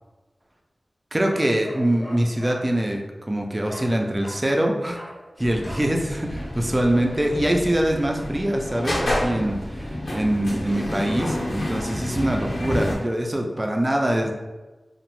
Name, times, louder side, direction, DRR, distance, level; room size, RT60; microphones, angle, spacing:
voice 1, 1.1-5.0 5.4-14.3, right 1 dB, 20° right, 2 dB, 0.4 m, -24 dB
Bark, 1.3-2.7 3.7-3.9 4.2-4.5 4.9-5.2 5.7-5.9, equal, 15° left, 0.7 m, -40 dB
sound 1, 5.4-13.0, left 1 dB, 85° left, 0.9 m, -29 dB
2.9 x 2.1 x 3.0 m, 1.2 s
wide cardioid pair, 90°, 0 cm